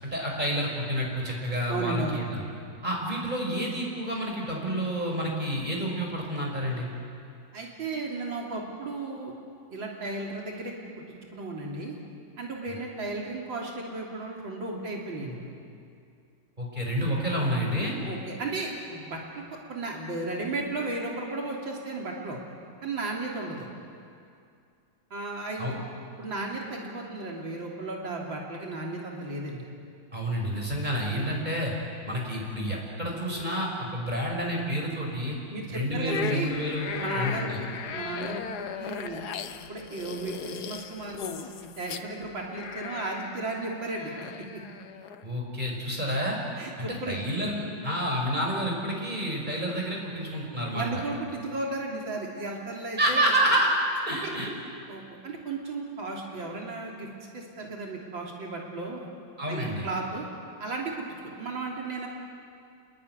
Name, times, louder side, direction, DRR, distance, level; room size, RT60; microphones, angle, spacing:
voice 1, 0.0-2.4 2.8-6.9 16.6-17.9 25.6-25.7 30.1-31.7 32.0-35.4 35.7-37.6 45.2-46.4 46.8-51.0 53.0-53.7 54.1-54.5 59.4-59.9, equal, 20° right, -1 dB, 5.9 m, -29 dB
voice 2, 1.7-2.2 7.5-9.3 9.7-10.7 11.3-12.0 12.4-15.5 18.0-19.4 19.7-22.4 22.8-23.7 25.1-25.8 26.2-29.7 35.5-36.5 37.0-39.2 39.6-41.5 41.8-44.1 44.5-44.6 46.6-47.2 50.7-53.3 54.1-54.3 54.9-57.1 57.3-59.1 59.5-60.3 60.6-61.1 61.4-62.1, right 3 dB, 85° right, -2 dB, 4.1 m, -34 dB
sound 1, 36.1-45.2, left 7 dB, 60° left, 1.5 m, -37 dB
29.0 x 21.5 x 9.6 m, 2.4 s
omnidirectional pair, 2.0 m